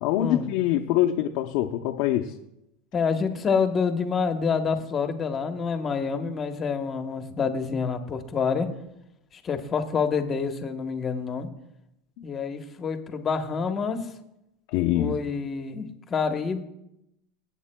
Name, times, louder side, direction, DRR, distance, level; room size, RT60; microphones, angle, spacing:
voice 1, 0.0-2.3 14.7-15.2, left 13 dB, 60° left, 3 dB, 0.6 m, -24 dB
voice 2, 2.9-8.7 9.4-11.5 12.2-14.0 14.9-16.6, left 5 dB, 25° left, 6 dB, 1.0 m, -27 dB
24.0 x 8.2 x 2.2 m, 0.86 s
supercardioid pair, 145°, 0 cm